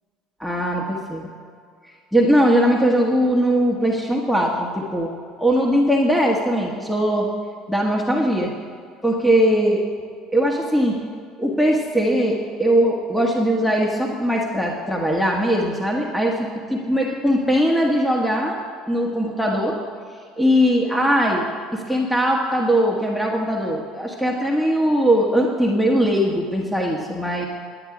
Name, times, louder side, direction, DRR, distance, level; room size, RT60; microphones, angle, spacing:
voice 1, 0.4-1.3 2.1-5.1 5.4-7.3 7.7-8.5 9.0-9.8 10.3-11.0 11.4-18.6 18.9-19.8 20.4-21.5 21.7-27.5, equal, ahead, -1 dB, 1.4 m, -20 dB
10.0 x 9.7 x 4.9 m, 2.2 s
hypercardioid pair, 75°, 0 cm